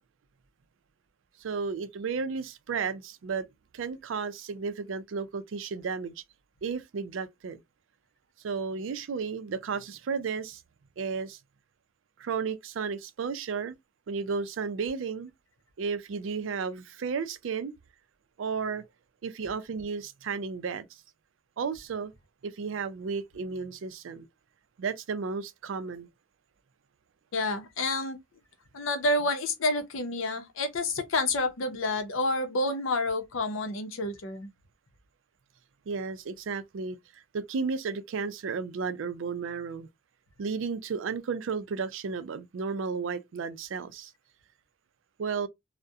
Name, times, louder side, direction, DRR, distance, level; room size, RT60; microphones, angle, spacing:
voice 1, 1.4-3.4 3.7-6.1 6.6-7.6 8.4-10.6 11.0-11.4 12.2-13.8 14.1-15.3 15.8-17.8 18.4-18.8 19.2-20.9 21.6-22.1 22.4-24.3 24.8-26.1 35.9-37.0 37.3-39.9 40.4-44.1 45.2-45.5, right 5 dB, 80° right, 0.4 m, -33 dB
voice 2, 27.3-28.2 28.7-34.5, left 2 dB, 90° left, 0.6 m, -29 dB
2.3 x 2.1 x 2.7 m
head